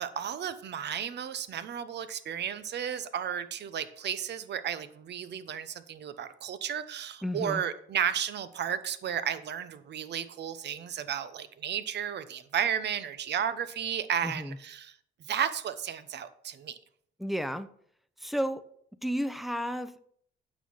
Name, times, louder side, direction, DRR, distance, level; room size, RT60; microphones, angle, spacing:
voice 1, 0.0-14.9 15.3-16.8, right 9 dB, 60° right, 13 dB, 0.9 m, -33 dB
voice 2, 7.2-7.6 14.2-14.6 17.2-17.7 18.2-18.6 19.0-20.0, equal, ahead, 10 dB, 0.7 m, -32 dB
9.0 x 6.3 x 5.5 m, 0.65 s
cardioid pair, 90°, 20 cm